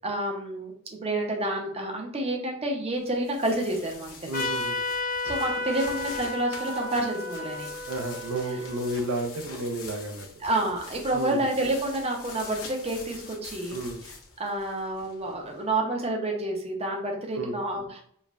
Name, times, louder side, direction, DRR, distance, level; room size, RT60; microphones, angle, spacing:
voice 1, 0.0-4.2 5.2-7.7 10.4-18.0, right 1 dB, 30° right, 1 dB, 0.7 m, -29 dB
sound 1, 3.0-15.6, left 4 dB, 75° left, 0.8 m, -45 dB
Trumpet, 4.3-9.4, left 2 dB, 40° left, 0.5 m, -33 dB
voice 2, 4.3-4.8 7.9-10.3 11.1-11.4 13.7-14.0 17.4-17.6, right 2 dB, 80° right, 5 dB, 0.5 m, -32 dB
5.1 x 2.2 x 2.5 m, 0.65 s
head